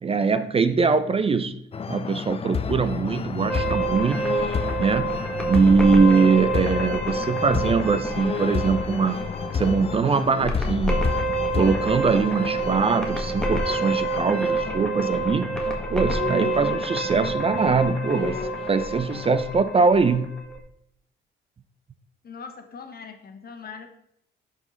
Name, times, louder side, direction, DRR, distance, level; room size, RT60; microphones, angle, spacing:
voice 1, 0.0-1.6 1.9-4.3 4.8-9.2 9.5-11.1 11.6-15.6 15.9-18.4 18.7-20.4, right 4 dB, 30° right, 12 dB, 0.5 m, -22 dB
sound 1, 1.7-19.4, left 6 dB, 30° left, 0.5 m, -31 dB
sound 2, 3.5-20.6, right 2 dB, 5° left, 1.7 m, -28 dB
voice 2, 22.2-23.9, left 5 dB, 50° left, 5 dB, 1.4 m, -41 dB
11.0 x 5.0 x 3.9 m, 0.72 s
cardioid pair, 90°, 20 cm